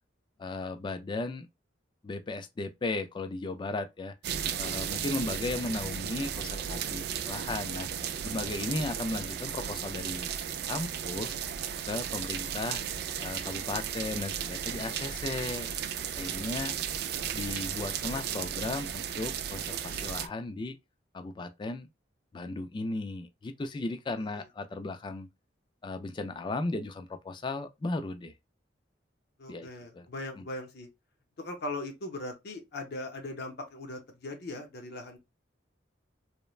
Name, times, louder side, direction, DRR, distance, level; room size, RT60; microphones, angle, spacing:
voice 1, 0.4-1.5 2.0-4.1 4.6-7.9 8.2-10.3 10.7-11.3 11.9-12.9 13.2-15.7 16.2-16.8 17.3-20.8 21.1-21.9 22.3-25.3 25.8-28.3 29.5-29.7 29.9-30.1 30.4-30.5, left 2 dB, 25° left, 0.3 m, -35 dB
sound 1, 4.2-20.3, right 8 dB, 55° right, 0.3 m, -35 dB
voice 2, 29.4-30.9 31.4-35.2, left 2 dB, 60° left, 0.6 m, -39 dB
3.1 x 2.1 x 2.3 m
head